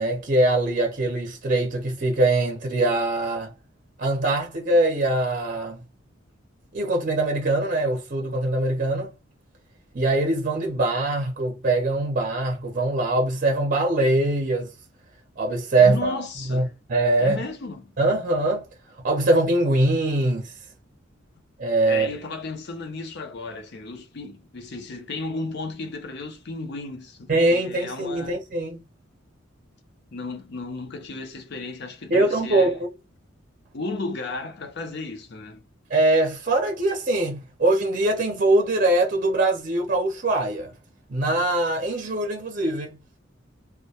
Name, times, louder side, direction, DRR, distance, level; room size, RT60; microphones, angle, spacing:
voice 1, 0.0-3.5 4.0-5.8 6.7-9.1 9.9-14.7 15.4-16.1 16.5-17.4 18.0-18.6 19.0-20.5 21.6-22.1 27.3-28.8 32.1-32.9 35.9-40.7 41.1-43.0, right 2 dB, 40° right, 0.6 m, -22 dB
voice 2, 15.8-16.8 17.2-17.9 21.9-28.4 30.1-32.7 33.7-35.6, left 3 dB, 60° left, 0.6 m, -34 dB
2.2 x 2.1 x 2.7 m
head